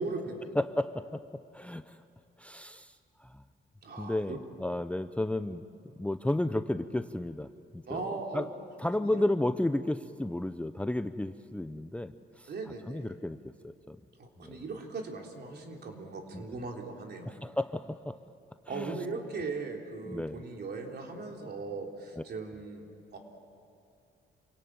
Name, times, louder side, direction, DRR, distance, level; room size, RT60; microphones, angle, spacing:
voice 1, 0.0-0.6 3.8-4.4 7.9-8.5 9.0-9.1 12.5-13.1 14.2-17.3 18.7-22.9 23.1-23.2, right 3 dB, 55° right, 2 dB, 3.6 m, -38 dB
voice 2, 0.5-2.0 2.4-3.4 4.0-5.6 6.0-8.5 8.8-12.5 12.9-14.0 14.4-14.6 16.3-16.4 17.2-18.2 18.7-19.0 20.1-20.4 22.2-22.3, left 1 dB, 5° left, 11 dB, 0.6 m, -33 dB
27.0 x 17.5 x 8.9 m, 2.5 s
cardioid pair, 90°, 20 cm